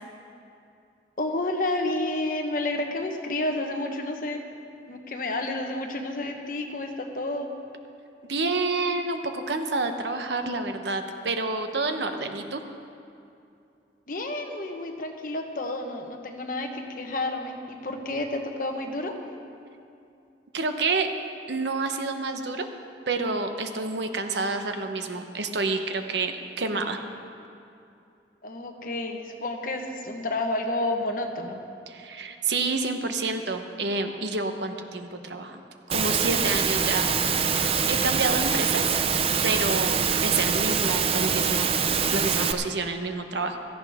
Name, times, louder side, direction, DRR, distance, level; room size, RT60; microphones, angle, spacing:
voice 1, 1.2-4.4 4.9-7.5 14.1-19.1 28.4-31.6, left 2 dB, 50° left, 4 dB, 1.1 m, -30 dB
voice 2, 8.2-12.6 20.5-21.1 21.5-22.7 23.1-27.0 31.9-35.6 35.9-37.1 37.5-38.8 39.4-41.7 42.1-43.6, right 3 dB, 75° right, 6 dB, 1.0 m, -28 dB
Engine / Mechanisms, 35.9-42.5, right 6 dB, 35° right, 0.5 m, -24 dB
16.5 x 14.0 x 3.6 m, 2.6 s
head